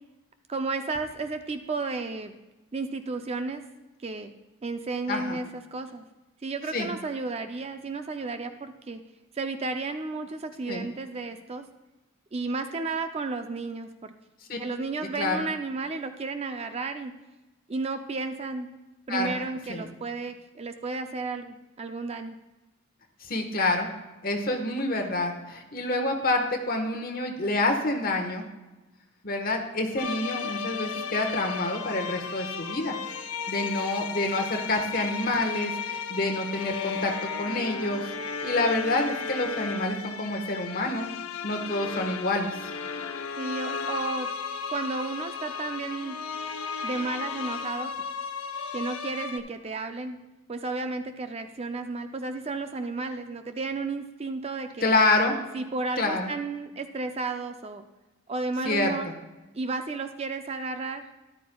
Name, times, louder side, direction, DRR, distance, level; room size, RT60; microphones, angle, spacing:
voice 1, 0.5-2.3 2.7-3.6 4.0-4.3 4.6-6.0 6.4-9.0 9.3-11.7 12.3-14.1 14.6-17.1 17.7-18.7 19.1-22.4 43.4-44.3 44.7-46.2 46.8-47.9 48.7-50.2 50.5-54.9 55.5-57.8 58.3-59.1 59.5-61.0, right 3 dB, 30° right, 8 dB, 0.4 m, -33 dB
voice 2, 5.1-5.4 6.7-6.9 10.7-10.9 14.5-14.6 15.2-15.4 19.1-19.4 19.7-19.9 23.2-23.9 24.2-28.4 29.2-33.0 33.5-37.1 37.4-38.1 38.4-41.1 41.4-42.5 54.8-55.4 56.0-56.3 58.6-59.0, left 2 dB, 40° left, 3 dB, 1.3 m, -27 dB
sound 1, 30.0-49.4, left 6 dB, 85° left, 0.7 m, -34 dB
13.5 x 11.0 x 2.3 m, 1.1 s
head